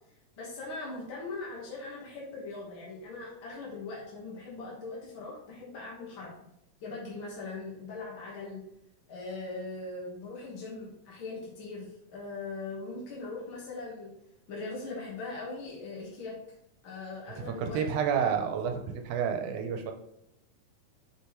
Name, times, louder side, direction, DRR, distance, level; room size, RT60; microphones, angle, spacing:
voice 1, 0.4-6.3 6.8-8.6 9.1-14.1 14.5-16.4 16.8-17.8, left 3 dB, 50° left, -5 dB, 2.0 m, -40 dB
voice 2, 17.4-19.9, right 7 dB, 85° right, 5 dB, 2.3 m, -30 dB
6.8 x 5.9 x 3.1 m, 0.82 s
omnidirectional pair, 3.4 m